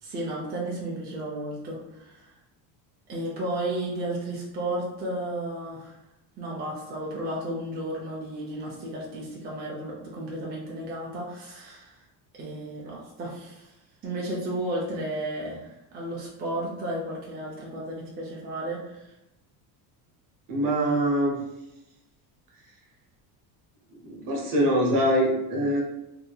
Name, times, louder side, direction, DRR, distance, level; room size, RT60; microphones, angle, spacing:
voice 1, 0.0-2.3 3.1-6.0 6.4-12.0 12.4-13.7 14.0-19.1, right 1 dB, 25° right, -4 dB, 0.5 m, -33 dB
voice 2, 20.5-21.4 23.9-25.8, right 1 dB, 50° right, -1 dB, 0.8 m, -24 dB
2.8 x 2.5 x 2.3 m, 0.90 s
cardioid pair, 130°, 44 cm